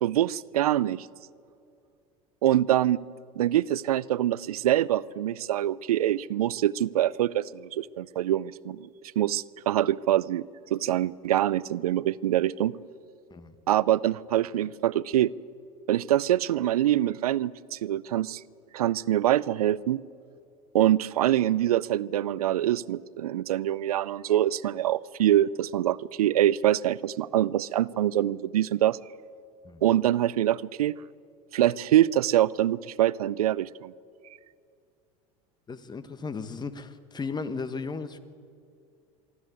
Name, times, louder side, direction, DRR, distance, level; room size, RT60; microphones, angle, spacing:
voice 1, 0.0-1.1 2.4-3.0 3.4-8.9 9.2-12.7 13.7-15.3 15.9-18.4 18.7-20.0 20.7-29.0 29.8-31.0 31.5-33.9, right 12 dB, 85° right, 21 dB, 0.5 m, -25 dB
voice 2, 35.7-38.2, left 4 dB, 25° left, 12 dB, 1.4 m, -35 dB
24.5 x 13.0 x 9.3 m, 2.4 s
hypercardioid pair, 85°, 19 cm